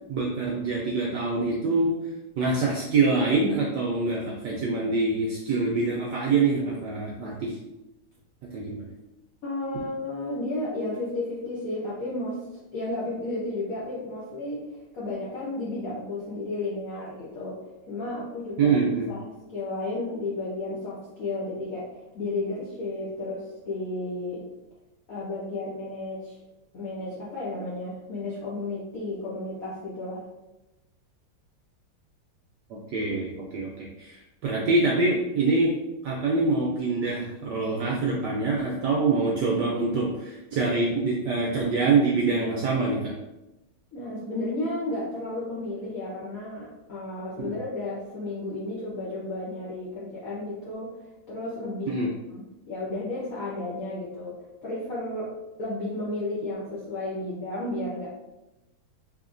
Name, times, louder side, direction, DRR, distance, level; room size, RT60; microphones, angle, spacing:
voice 1, 0.1-1.9 2.4-7.6 8.5-8.9 18.6-19.1 32.9-35.7 36.0-43.1 47.4-47.5 51.9-52.1, right 3 dB, 75° right, -2 dB, 1.0 m, -25 dB
voice 2, 9.4-12.4 12.7-17.6 17.9-18.7 19.1-19.2 19.5-21.9 22.1-24.5 25.1-26.4 26.7-30.2 43.9-51.0 51.3-51.9 52.3-55.3 55.6-58.1, left 2 dB, 65° left, -7 dB, 0.9 m, -33 dB
3.6 x 3.4 x 2.5 m, 0.96 s
omnidirectional pair, 2.4 m